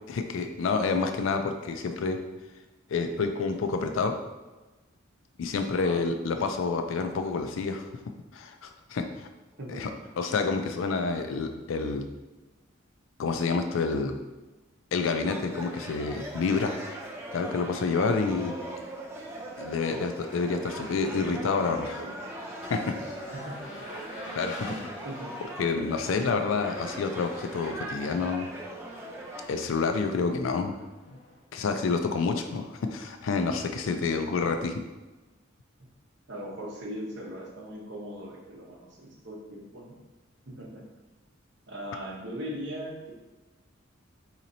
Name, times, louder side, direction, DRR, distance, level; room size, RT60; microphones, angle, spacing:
voice 1, 0.1-2.2 2.9-4.2 5.4-7.8 8.3-9.3 9.7-9.9 10.2-12.1 13.2-14.2 14.9-16.7 17.3-18.5 19.6-22.0 22.7-22.9 24.4-24.8 25.6-28.5 29.5-30.7 31.1-31.2 31.5-34.7, left 4 dB, 75° left, 6 dB, 0.4 m, -28 dB
voice 2, 5.7-6.0 9.6-10.1 18.2-18.3 20.6-22.2 23.3-23.9 24.6-24.8 25.0-25.3 26.3-26.6 34.0-34.1 34.3-34.5 35.8-35.9 36.3-40.0 40.5-40.8 41.7-43.1, equal, 55° right, -2 dB, 0.8 m, -40 dB
sound 1, 15.1-29.4, right 1 dB, 15° right, 0.4 m, -40 dB
Race car auto racing / Engine, 21.3-31.4, equal, 55° left, 1.2 m, -47 dB
4.0 x 2.9 x 2.6 m, 1.1 s
head